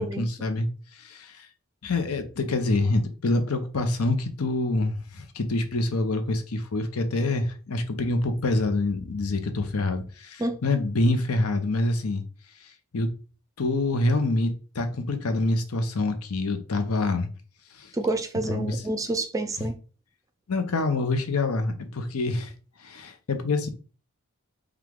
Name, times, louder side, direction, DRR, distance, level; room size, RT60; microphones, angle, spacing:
voice 1, 0.0-1.5 1.8-12.2 12.6-13.1 13.6-17.3 17.7-17.9 18.4-18.8 19.6-19.7 20.5-22.5 22.8-23.7, left 2 dB, 90° left, 0.8 m, -26 dB
voice 2, 17.9-19.7, right 2 dB, 15° right, 0.4 m, -28 dB
4.9 x 2.3 x 3.6 m
head